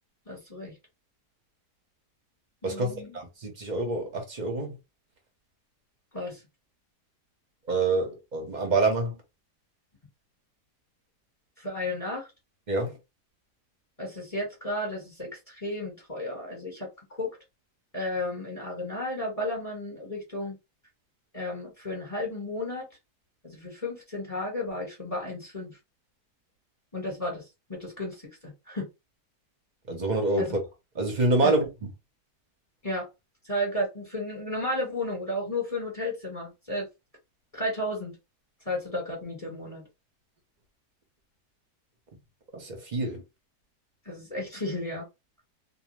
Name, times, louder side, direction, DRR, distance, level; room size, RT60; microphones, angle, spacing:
voice 1, 0.3-0.7 2.6-3.2 6.1-6.4 11.6-12.3 14.0-17.3 17.9-20.6 21.3-22.9 23.4-25.8 26.9-27.4 27.7-28.9 30.4-30.5 31.4-31.6 32.8-33.1 33.4-36.9 37.5-38.1 38.6-39.8 44.0-45.0, left 1 dB, 25° left, 1.2 m, -33 dB
voice 2, 2.6-4.8 7.7-9.2 12.7-13.0 29.9-30.6 30.9-31.7 42.5-43.2, right 2 dB, 45° right, 0.6 m, -27 dB
2.6 x 2.2 x 3.1 m
omnidirectional pair, 1.8 m